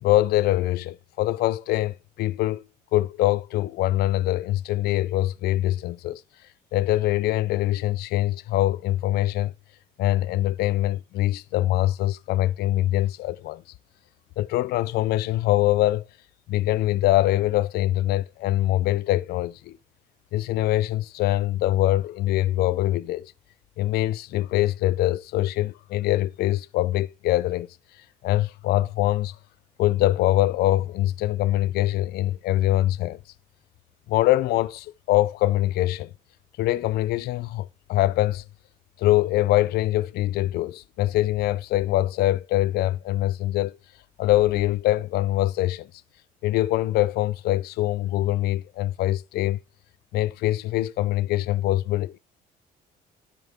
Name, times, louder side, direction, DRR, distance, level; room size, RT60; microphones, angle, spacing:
voice 1, 0.0-2.6 2.9-6.2 6.7-9.5 10.0-13.6 14.4-16.1 16.5-19.8 20.3-23.3 23.8-27.7 28.0-29.4 29.8-33.2 34.1-36.1 36.6-38.4 39.0-43.7 44.2-45.9 46.4-49.6 50.1-52.2, left 15 dB, 70° left, 0.4 m, -23 dB
10.0 x 8.0 x 3.5 m
cardioid pair, 110°, 17 cm